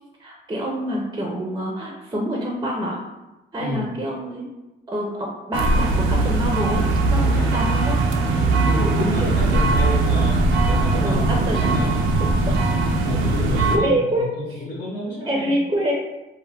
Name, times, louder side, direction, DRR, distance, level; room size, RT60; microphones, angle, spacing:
voice 1, 0.2-3.0 3.5-4.5 4.9-6.8 7.1-8.0 11.0-11.6 13.7-14.6 15.3-15.9, right 1 dB, 20° right, -2 dB, 0.5 m, -26 dB
voice 2, 3.6-3.9 7.3-7.5 8.4-12.0 12.9-15.5, left 2 dB, 55° left, -4 dB, 0.7 m, -29 dB
sound 1, 5.5-13.8, right 3 dB, 80° right, 0.4 m, -20 dB
2.3 x 2.1 x 3.3 m, 1.0 s
cardioid pair, 90°, 20 cm